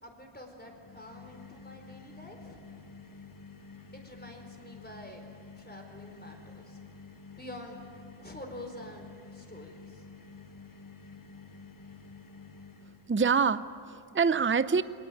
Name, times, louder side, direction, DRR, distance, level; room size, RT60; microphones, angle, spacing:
voice 1, 0.0-2.6 3.9-5.2 5.5-6.8 7.3-7.9 8.2-10.0, left 1 dB, 20° left, 3 dB, 4.4 m, -47 dB
sound 1, 0.7-13.3, left 4 dB, 40° left, 1.2 m, -50 dB
voice 2, 13.1-14.8, right 5 dB, 25° right, 14 dB, 0.6 m, -26 dB
23.5 x 19.5 x 9.2 m, 2.4 s
wide cardioid pair, 75°, 48 cm